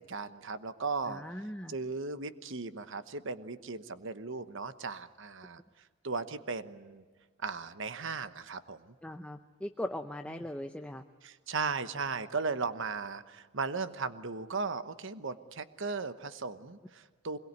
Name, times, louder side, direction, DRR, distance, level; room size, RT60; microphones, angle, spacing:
voice 1, 0.0-1.2 1.7-5.6 6.0-7.0 7.4-8.9 10.4-10.5 11.2-17.4, right 4 dB, 60° right, 12 dB, 1.1 m, -37 dB
voice 2, 1.1-1.8 9.0-11.0, left 1 dB, 5° left, 6 dB, 0.7 m, -39 dB
24.5 x 22.0 x 9.6 m, 1.4 s
head